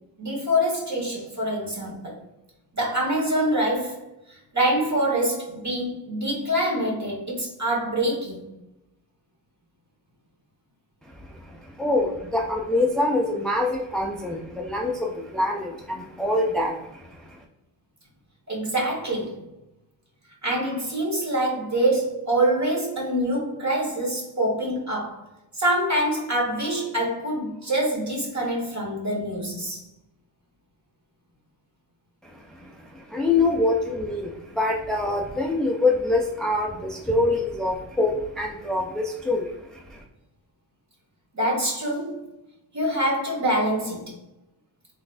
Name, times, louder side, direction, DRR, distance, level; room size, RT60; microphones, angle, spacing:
voice 1, 0.2-2.1 2.7-4.0 4.3-8.5 18.5-19.4 20.4-25.2 25.5-29.8 41.3-42.2 42.7-44.1, right 1 dB, 35° right, -2 dB, 1.4 m, -25 dB
voice 2, 11.1-17.4 32.2-40.0, left 2 dB, ahead, 0 dB, 0.3 m, -25 dB
4.0 x 3.4 x 2.5 m, 0.94 s
wide cardioid pair, 125°, 48 cm